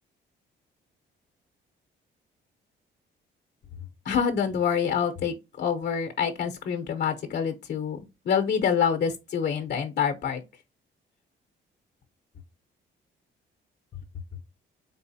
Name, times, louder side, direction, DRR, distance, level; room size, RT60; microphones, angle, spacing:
voice 1, 4.0-8.0 8.2-10.4, left 7 dB, 55° left, 0.8 m, -26 dB
4.0 x 3.7 x 2.7 m
cardioid pair, 90°, 20 cm